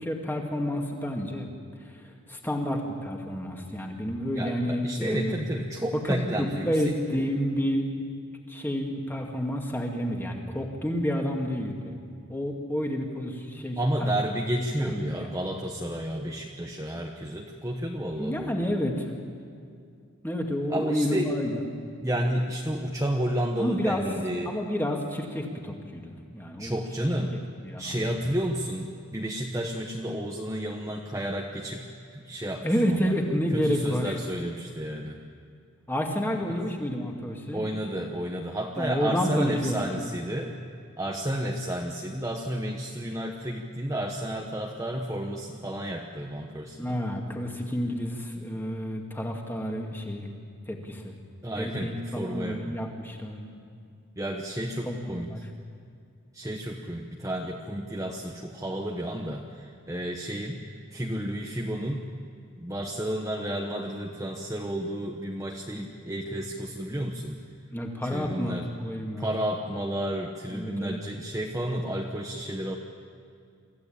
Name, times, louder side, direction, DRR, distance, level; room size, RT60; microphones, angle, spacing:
voice 1, 0.0-1.5 1.9-5.4 5.9-7.9 8.5-11.9 12.3-14.1 14.8-15.4 18.2-19.1 20.2-21.5 23.6-24.0 24.5-26.8 27.6-28.3 32.6-34.2 35.9-37.6 38.8-39.9 46.8-50.3 50.7-51.1 51.6-53.5 54.9-55.4 67.7-69.3 70.5-71.0, equal, 10° left, 1 dB, 2.2 m, -30 dB
voice 2, 4.3-6.7 7.1-7.3 13.8-18.7 20.7-21.3 22.0-24.6 26.6-27.4 27.8-31.9 32.1-33.1 33.5-35.2 36.5-36.7 37.5-40.6 41.0-47.0 51.4-52.8 54.2-55.3 56.3-62.1 62.6-67.4 68.0-68.7 69.2-72.7, right 1 dB, 15° right, 0 dB, 1.1 m, -31 dB
25.0 x 15.0 x 8.8 m, 2.3 s
head